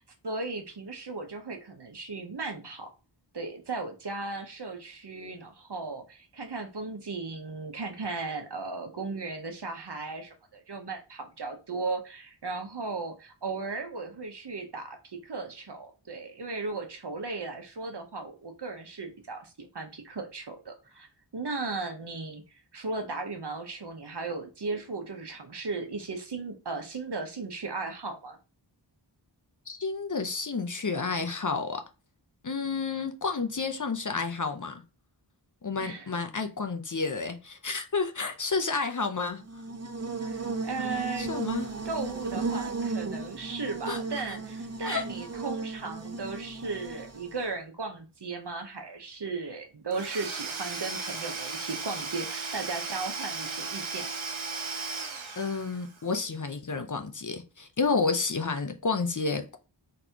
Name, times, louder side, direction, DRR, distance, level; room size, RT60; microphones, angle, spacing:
voice 1, 0.0-2.9 3.3-21.1 21.3-28.4 35.8-36.1 40.3-41.3 41.9-54.1, right 3 dB, 60° right, 0.9 m, -36 dB
voice 2, 29.7-31.8 32.4-34.8 35.6-39.4 41.2-41.7 43.9-44.0 44.8-45.0 55.4-59.6, left 4 dB, 40° left, 0.6 m, -30 dB
Buzz, 39.4-47.5, right 3 dB, 35° right, 0.6 m, -35 dB
Domestic sounds home sounds / Tools, 49.9-56.0, right 4 dB, 85° right, 0.8 m, -36 dB
4.0 x 3.3 x 2.9 m
wide cardioid pair, 45°, 46 cm